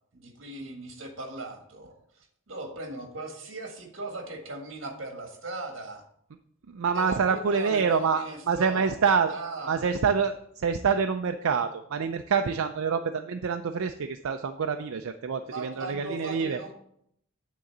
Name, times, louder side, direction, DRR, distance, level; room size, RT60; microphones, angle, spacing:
voice 1, 0.2-6.0 6.9-8.9 9.3-9.9 15.4-16.7, right 2 dB, 65° right, 3 dB, 1.8 m, -38 dB
voice 2, 6.7-9.3 9.7-16.6, right 6 dB, 85° right, 7 dB, 0.5 m, -26 dB
9.3 x 3.8 x 7.1 m, 0.72 s
head